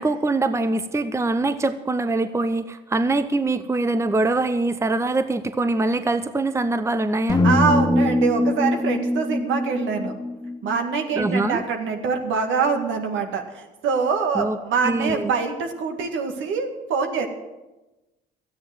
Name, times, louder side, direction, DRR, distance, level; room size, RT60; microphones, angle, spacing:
voice 1, 0.0-7.4 11.2-11.6 14.3-14.6 14.8-15.3, right 2 dB, 15° right, 12 dB, 0.8 m, -23 dB
sound 1, 7.3-11.4, left 2 dB, 20° left, 1.6 m, -23 dB
voice 2, 7.4-10.2 10.6-17.3, right 5 dB, 70° right, 5 dB, 2.0 m, -24 dB
13.5 x 9.5 x 7.7 m, 1.1 s
hypercardioid pair, 60°, 21 cm